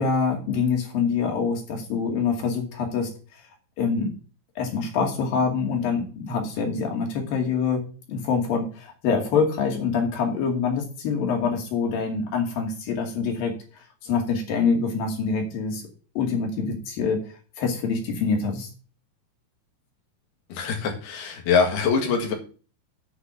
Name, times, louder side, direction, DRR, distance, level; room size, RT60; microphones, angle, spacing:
voice 1, 0.0-3.1 3.8-4.1 4.6-7.8 8.1-13.5 14.1-15.8 16.2-17.2 17.6-18.7, left 5 dB, 65° left, 3 dB, 4.0 m, -25 dB
voice 2, 20.5-22.3, left 5 dB, 85° left, 4 dB, 3.9 m, -23 dB
9.6 x 6.0 x 6.9 m, 0.37 s
omnidirectional pair, 4.4 m